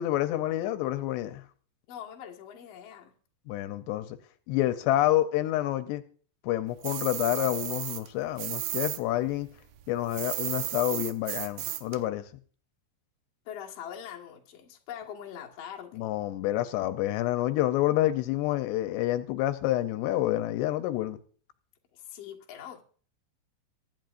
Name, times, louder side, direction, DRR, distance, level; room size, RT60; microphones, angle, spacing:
voice 1, 0.0-1.4 3.5-4.2 4.5-6.0 6.4-9.5 9.9-12.3 15.9-21.2, left 14 dB, 80° left, 2.9 m, -28 dB
voice 2, 1.9-3.1 13.5-16.1 21.9-22.8, left 9 dB, 50° left, 2.0 m, -43 dB
sound 1, 6.8-9.0 9.3-12.0, right 14 dB, 75° right, 2.2 m, -34 dB
23.0 x 11.0 x 2.6 m
omnidirectional pair, 5.0 m